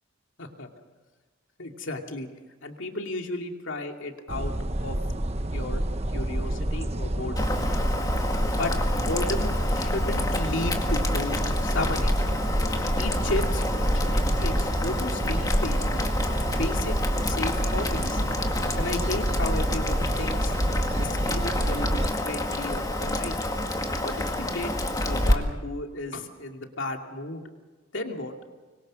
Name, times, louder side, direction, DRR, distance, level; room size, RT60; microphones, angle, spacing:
voice 1, 0.4-0.7 1.6-2.3 2.6-4.5 4.8-5.0 5.5-5.8 6.1-7.6 8.6-12.2 13.0-16.0 16.6-17.0 17.2-18.2 18.8-20.5 21.0-23.4 24.0-27.4 27.9-28.3, left 2 dB, 65° left, 3 dB, 2.5 m, -34 dB
sound 1, 4.3-22.1, right 1 dB, 30° right, 1.1 m, -28 dB
Boiling, 7.4-25.3, left 1 dB, 15° left, 2.0 m, -28 dB
25.5 x 22.5 x 6.3 m, 1.3 s
head